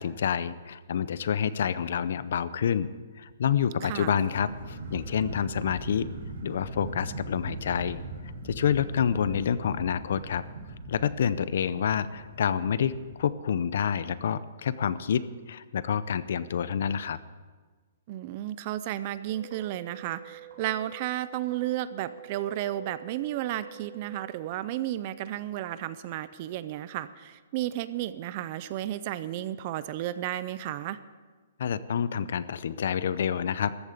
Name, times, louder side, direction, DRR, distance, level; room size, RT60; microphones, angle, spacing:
voice 1, 0.0-2.9 3.2-6.1 6.4-8.0 8.4-10.4 10.9-17.2 31.6-33.8, left 8 dB, 50° left, 16 dB, 0.6 m, -28 dB
voice 2, 3.8-4.2 18.1-31.0, right 13 dB, 25° right, 15 dB, 0.4 m, -33 dB
sound 1, 4.2-13.2, right 2 dB, 75° right, 3.3 m, -40 dB
sound 2, 19.3-24.2, right 13 dB, 50° right, 5.0 m, -47 dB
14.0 x 8.8 x 8.2 m, 1.4 s
hypercardioid pair, 180°, 0 cm